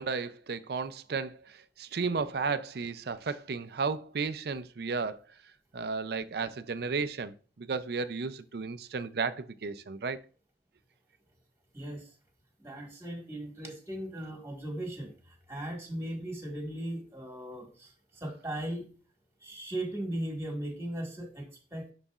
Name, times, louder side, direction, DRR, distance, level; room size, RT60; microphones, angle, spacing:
voice 1, 0.0-5.2 5.7-10.2, right 4 dB, 60° right, 0.5 m, -34 dB
voice 2, 11.7-12.1 12.6-18.9 19.4-21.9, right 1 dB, 15° right, 1.6 m, -38 dB
10.5 x 4.0 x 2.4 m
head